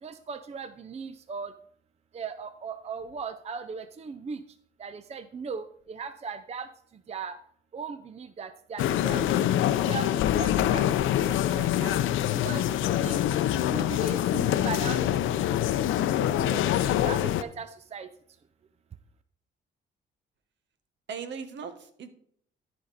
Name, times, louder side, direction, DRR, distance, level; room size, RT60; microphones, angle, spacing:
voice 1, 0.0-1.5 2.1-4.4 4.8-7.4 7.7-12.0 12.3-12.7 13.0-13.2 13.7-15.5 16.0-18.1, right 5 dB, 30° right, 11 dB, 0.5 m, -38 dB
sound 1, 8.8-17.4, left 11 dB, 80° left, 0.5 m, -25 dB
voice 2, 13.9-14.2 21.1-22.1, right 6 dB, 65° right, 9 dB, 1.3 m, -39 dB
13.5 x 5.2 x 4.1 m, 0.64 s
cardioid pair, 90°, 20 cm